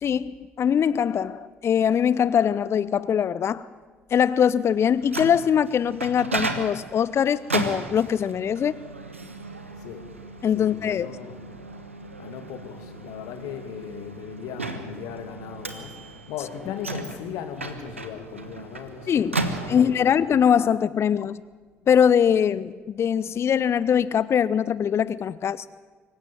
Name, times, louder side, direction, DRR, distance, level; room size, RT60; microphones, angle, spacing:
voice 1, 0.0-3.6 4.1-8.7 10.4-11.1 19.1-19.4 19.7-21.4 21.9-25.7, left 8 dB, 40° left, 18 dB, 0.6 m, -22 dB
Microwave oven, 4.7-20.2, right 2 dB, 85° right, 1.2 m, -35 dB
voice 2, 10.5-11.4 12.2-20.1, left 8 dB, 60° left, 7 dB, 2.6 m, -38 dB
25.0 x 15.0 x 9.2 m, 1.4 s
figure-of-eight pair, 50°, 7 cm